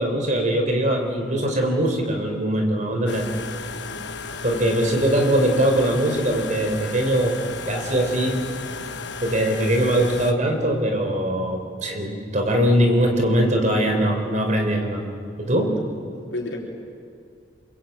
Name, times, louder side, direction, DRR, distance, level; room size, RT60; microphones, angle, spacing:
voice 1, 0.0-3.3 4.4-7.3 7.7-8.4 9.2-15.0 15.4-15.7, right 1 dB, 40° right, 3 dB, 4.5 m, -21 dB
sound 1, 3.1-10.3, left 4 dB, 65° left, 1.6 m, -34 dB
voice 2, 3.7-4.0 15.7-15.9 16.3-16.6, left 2 dB, 80° left, -3 dB, 4.3 m, -33 dB
28.0 x 22.5 x 9.0 m, 2.5 s
head